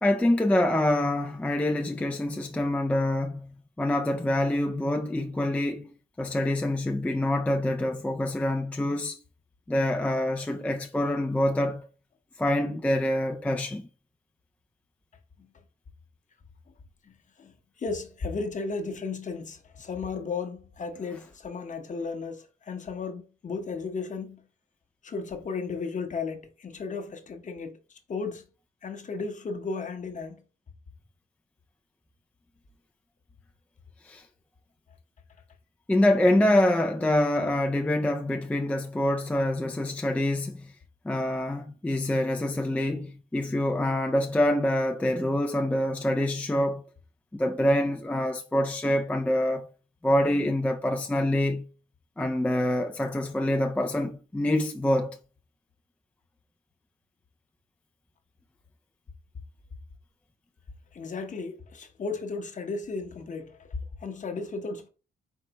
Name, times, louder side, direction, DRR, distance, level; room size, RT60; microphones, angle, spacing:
voice 1, 0.0-9.2 9.7-11.9 12.4-13.9 34.0-34.3 35.9-40.7 41.1-46.8 47.3-49.7 50.0-51.7 52.2-55.2, left 1 dB, 5° left, 0.4 m, -26 dB
voice 2, 17.0-24.4 25.0-28.5 28.8-30.4 60.9-64.9, left 4 dB, 40° left, 0.9 m, -35 dB
4.5 x 3.3 x 2.9 m
cardioid pair, 90°, 20 cm